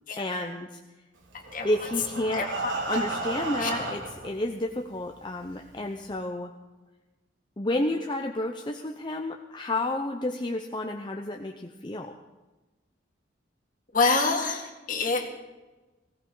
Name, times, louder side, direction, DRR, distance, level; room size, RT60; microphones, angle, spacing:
voice 1, 0.2-0.8 1.6-2.5 2.9-6.5 7.6-12.1, left 1 dB, 25° left, 3 dB, 0.7 m, -31 dB
voice 2, 1.3-1.7 2.3-3.0 3.6-3.7 13.9-15.3, left 3 dB, 45° left, 3 dB, 2.1 m, -27 dB
Breathing, 1.3-4.3 5.0-5.1 5.5-5.6 6.0-6.1, right 3 dB, 85° right, 3.8 m, -33 dB
19.5 x 17.0 x 3.9 m, 1.2 s
head